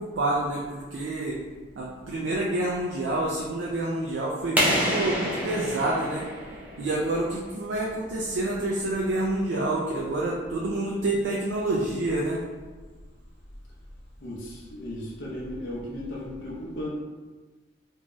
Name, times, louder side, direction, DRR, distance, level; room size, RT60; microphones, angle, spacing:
voice 1, 0.0-1.4 1.8-6.3 6.8-12.4, right 2 dB, 70° right, -3 dB, 0.4 m, -28 dB
sound 1, 4.6-7.2, equal, 10° right, 0.4 m, -27 dB
voice 2, 14.2-16.9, left 1 dB, 75° left, -5 dB, 0.6 m, -35 dB
2.6 x 2.3 x 3.0 m, 1.3 s
head